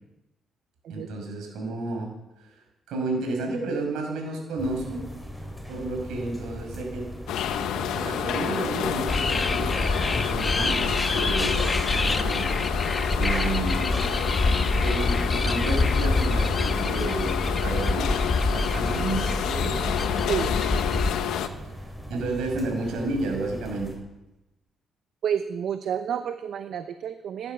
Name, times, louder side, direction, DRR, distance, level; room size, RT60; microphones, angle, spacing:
voice 1, 0.9-2.1 2.4-2.6 2.9-5.1 5.7-7.1 7.9-12.5 13.1-13.9 14.4-19.9 22.1-23.9, right 2 dB, 85° right, 2 dB, 5.9 m, -31 dB
sound 1, 4.6-24.0, equal, ahead, 5.2 m, -39 dB
sound 2, 7.3-21.5, left 9 dB, 85° left, 1.1 m, -29 dB
seagulls near sea, 9.1-21.1, left 2 dB, 25° left, 1.2 m, -26 dB
voice 2, 25.2-27.5, right 8 dB, 70° right, 9 dB, 0.8 m, -30 dB
17.0 x 10.5 x 7.1 m, 0.96 s
cardioid pair, 90°, 0 cm